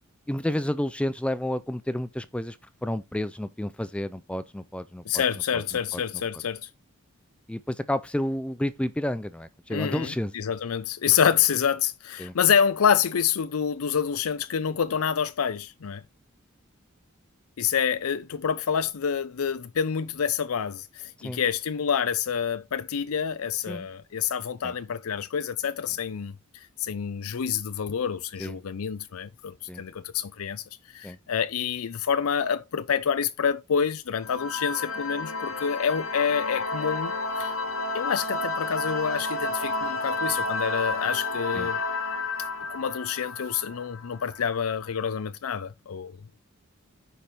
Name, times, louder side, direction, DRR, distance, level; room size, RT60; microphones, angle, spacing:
voice 1, 0.3-2.6 2.8-5.2 5.5-5.6 5.9-6.2 7.5-10.3 12.2-12.3 21.2-21.4 23.7-23.9 24.6-24.8 28.4-28.6 29.7-29.8 31.0-31.2 41.5-41.7, left 1 dB, 5° left, 0.4 m, -30 dB
voice 2, 5.1-6.7 9.7-16.0 17.6-26.3 26.8-30.6 30.9-37.1 37.4-37.6 37.9-41.8 42.7-46.1, left 7 dB, 90° left, 0.5 m, -27 dB
sound 1, 34.2-44.6, left 3 dB, 70° left, 2.2 m, -31 dB
10.0 x 5.3 x 4.3 m
head